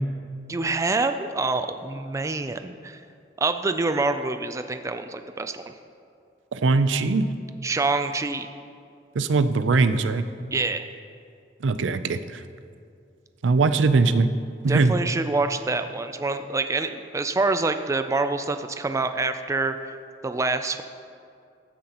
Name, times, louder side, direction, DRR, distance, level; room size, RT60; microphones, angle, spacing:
voice 1, 0.5-3.0 3.4-5.7 7.6-8.5 10.5-10.8 14.7-19.9 20.2-20.8, right 3 dB, 15° right, 9 dB, 0.3 m, -26 dB
voice 2, 6.5-7.3 9.2-10.2 11.6-12.4 13.4-14.3 14.6-15.0, right 3 dB, 85° right, 11 dB, 0.5 m, -21 dB
15.0 x 9.4 x 2.9 m, 2.4 s
head